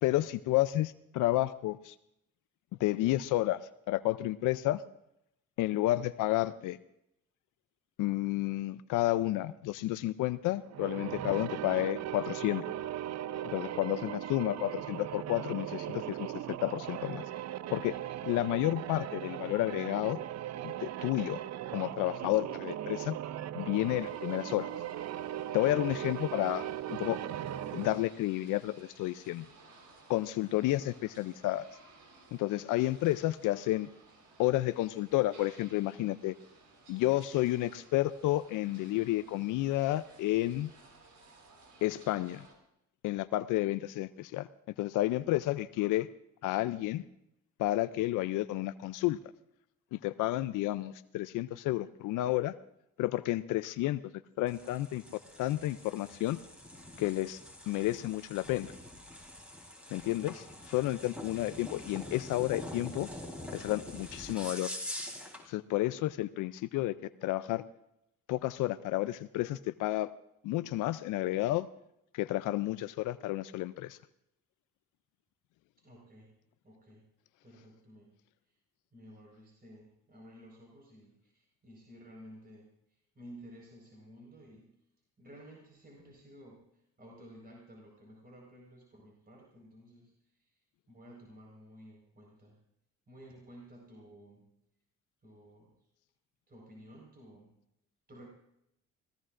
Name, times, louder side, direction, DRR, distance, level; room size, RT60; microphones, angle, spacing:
voice 1, 0.0-1.9 2.8-3.6 3.9-4.8 5.6-6.8 8.0-12.6 13.5-16.3 16.6-17.2 17.7-18.0 18.2-20.2 20.8-21.4 21.7-23.2 23.5-24.7 25.5-27.2 27.7-29.4 30.1-31.6 32.3-33.9 34.4-36.4 36.9-40.7 41.8-42.4 43.0-44.5 44.8-46.1 46.4-47.0 47.6-49.2 49.9-52.5 53.0-54.1 54.4-55.0 55.4-56.4 57.0-57.4 57.7-58.7 59.9-63.1 63.5-64.7 65.5-67.6 68.3-70.1 70.4-71.7 72.1-74.0, left 16 dB, 90° left, 14 dB, 0.5 m, -31 dB
sound 1, 10.6-28.1, right 12 dB, 60° right, 0.5 m, -38 dB
voice 2, 13.7-14.2 18.3-18.4 30.2-30.4 41.0-41.1 60.2-60.4 61.4-61.7 75.8-76.3 76.6-77.0 77.4-78.1 78.4-78.6 78.9-84.7 85.2-92.6 93.1-94.6 95.2-95.8 96.5-97.6 98.1-98.3, equal, 30° right, -1 dB, 4.6 m, -54 dB
sound 2, 23.7-42.5, right 3 dB, 75° right, 4.2 m, -58 dB
sound 3, 54.5-65.4, left 1 dB, 5° right, 3.8 m, -45 dB
26.5 x 16.5 x 2.5 m, 0.80 s
cardioid pair, 90°, 30 cm